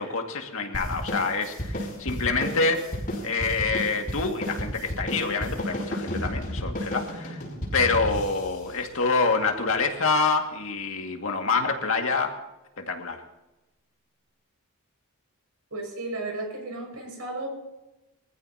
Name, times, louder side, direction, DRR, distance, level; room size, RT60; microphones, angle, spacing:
voice 1, 0.0-3.0 3.2-7.4 7.7-12.4 12.8-13.2, left 4 dB, 65° left, 3 dB, 2.0 m, -26 dB
sound 1, 0.7-9.6, equal, 40° left, 6.0 m, -33 dB
voice 2, 15.7-17.5, right 2 dB, 75° right, 1 dB, 5.9 m, -34 dB
23.5 x 15.0 x 2.9 m, 0.99 s
head